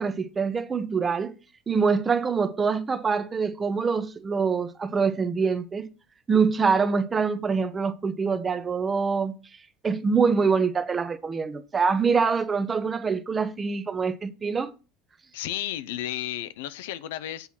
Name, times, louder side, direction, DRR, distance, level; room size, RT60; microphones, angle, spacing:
voice 1, 0.0-1.4 1.7-5.9 6.3-9.4 9.8-14.7, right 5 dB, 25° right, 0.7 m, -25 dB
voice 2, 15.3-17.5, left 13 dB, 85° left, 0.6 m, -33 dB
8.0 x 4.1 x 6.0 m
supercardioid pair, 115°, 0 cm